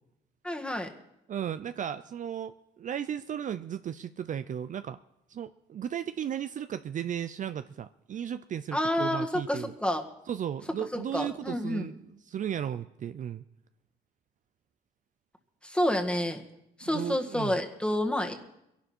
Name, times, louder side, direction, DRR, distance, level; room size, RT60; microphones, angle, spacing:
voice 1, 0.4-0.9 8.7-10.0 10.9-11.9 15.6-16.4 16.8-18.3, left 1 dB, 5° left, 3 dB, 1.8 m, -29 dB
voice 2, 1.3-5.0 5.3-9.7 10.3-13.4 16.8-17.6, right 9 dB, 45° right, 11 dB, 0.5 m, -35 dB
22.0 x 11.5 x 4.4 m, 0.85 s
cardioid pair, 85°, 18 cm